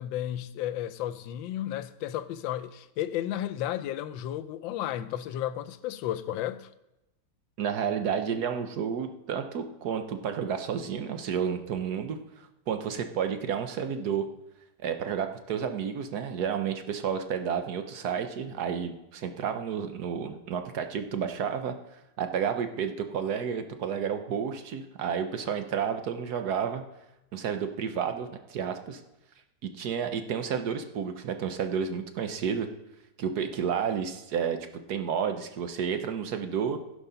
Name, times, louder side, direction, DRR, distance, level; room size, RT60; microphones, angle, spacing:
voice 1, 0.0-6.7, left 12 dB, 90° left, 1.3 m, -33 dB
voice 2, 7.6-14.3 14.8-21.7 22.2-26.8 27.3-29.0 29.6-32.7 33.2-34.6 34.9-36.8, right 7 dB, 65° right, 1.2 m, -31 dB
15.5 x 5.5 x 5.6 m
omnidirectional pair, 2.0 m